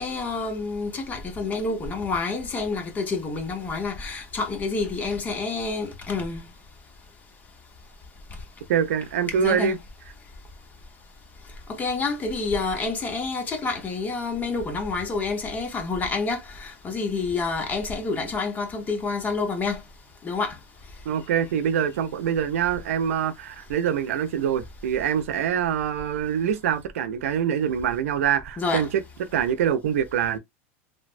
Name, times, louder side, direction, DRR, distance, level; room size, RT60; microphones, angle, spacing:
voice 1, 0.0-6.4 9.3-9.7 11.7-19.8 20.2-20.6 28.6-28.9, left 4 dB, 25° left, 0.8 m, -28 dB
voice 2, 8.7-9.8 21.1-28.9 29.3-30.4, right 8 dB, 90° right, 0.4 m, -25 dB
3.2 x 2.1 x 2.5 m
supercardioid pair, 130°, 7 cm